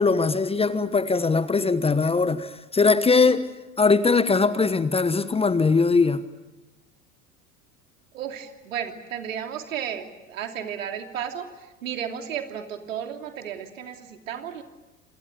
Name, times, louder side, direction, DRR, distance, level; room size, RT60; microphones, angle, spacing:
voice 1, 0.0-3.5 3.8-6.2, left 4 dB, 15° left, 14 dB, 1.2 m, -21 dB
voice 2, 8.1-14.6, right 9 dB, 70° right, 5 dB, 3.0 m, -33 dB
28.5 x 27.0 x 7.0 m, 1.0 s
figure-of-eight pair, 75°, 41 cm